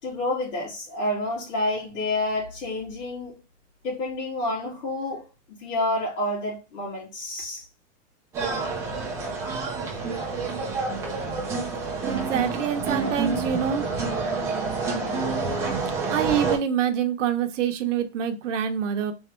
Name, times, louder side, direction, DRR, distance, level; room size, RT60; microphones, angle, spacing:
voice 1, 0.0-3.3 3.8-7.6, left 1 dB, 85° left, 2.2 m, -29 dB
sound 1, 8.3-16.6, right 4 dB, 10° right, 0.4 m, -28 dB
voice 2, 12.1-14.0 16.1-19.1, right 8 dB, 80° right, 0.8 m, -26 dB
3.5 x 3.2 x 3.0 m
supercardioid pair, 160°, 37 cm